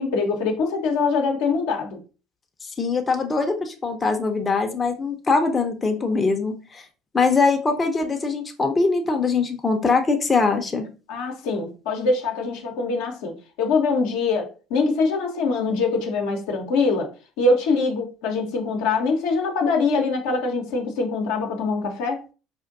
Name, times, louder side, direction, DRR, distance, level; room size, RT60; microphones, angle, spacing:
voice 1, 0.0-2.0 11.1-13.3 13.6-17.1 17.4-22.2, left 4 dB, 70° left, 0.7 m, -23 dB
voice 2, 2.8-6.8 7.1-10.9, left 4 dB, 25° left, 0.6 m, -22 dB
4.3 x 2.5 x 2.5 m
hypercardioid pair, 65°, 0 cm